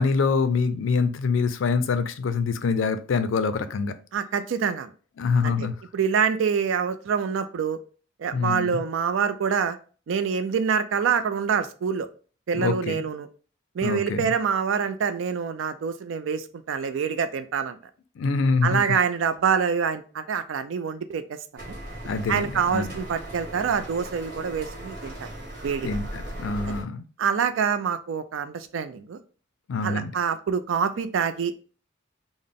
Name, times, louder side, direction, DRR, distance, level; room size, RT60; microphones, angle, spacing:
voice 1, 0.0-3.9 5.2-5.8 8.3-8.8 12.5-13.1 13.8-14.3 18.2-18.8 22.1-22.9 25.8-27.0 29.7-30.1, left 4 dB, 80° left, 0.4 m, -25 dB
voice 2, 4.1-4.9 5.4-5.5 5.9-7.8 8.2-9.8 10.1-12.1 12.5-13.3 13.8-17.8 18.6-21.2 21.7-21.8 22.3-25.3 25.6-25.9 26.7-26.8 27.2-29.2 29.8-31.5, right 6 dB, 80° right, 0.4 m, -26 dB
sound 1, 21.6-26.8, right 1 dB, 50° right, 1.4 m, -38 dB
3.8 x 2.0 x 3.5 m
head